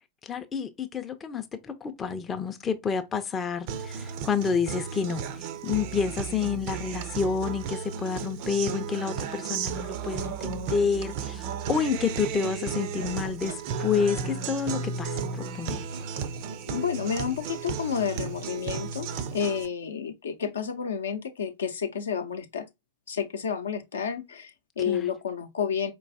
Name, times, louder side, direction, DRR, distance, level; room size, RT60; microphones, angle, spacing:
voice 1, 0.2-15.8 24.9-25.1, left 6 dB, 20° left, 0.5 m, -29 dB
Guitar, 3.7-19.7, right 6 dB, 45° right, 0.5 m, -34 dB
sound 1, 10.2-10.7 11.1-12.6 12.9-14.5 15.0-15.1 15.7-15.8, right 3 dB, 75° right, 0.8 m, -48 dB
voice 2, 16.7-22.7 23.1-25.9, left 7 dB, 65° left, 0.6 m, -30 dB
4.5 x 3.0 x 2.6 m
figure-of-eight pair, 90°, 0 cm